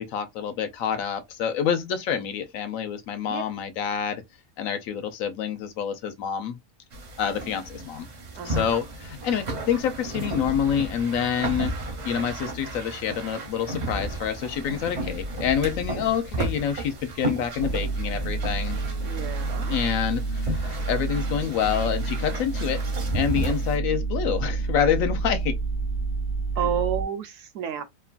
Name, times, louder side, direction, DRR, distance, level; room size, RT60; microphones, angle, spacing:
voice 1, 0.0-4.2 4.6-6.6 7.2-8.1 8.4-11.7 12.0-18.9 19.7-22.8 23.1-25.6, left 8 dB, 75° left, 1.0 m, -27 dB
sound 1, 6.9-23.8, right 1 dB, 45° right, 0.6 m, -33 dB
voice 2, 8.4-8.7 19.0-19.7 26.6-27.8, right 9 dB, 70° right, 0.9 m, -30 dB
sound 2, 17.6-27.0, right 3 dB, 50° left, 0.7 m, -29 dB
3.0 x 2.1 x 2.3 m
omnidirectional pair, 1.4 m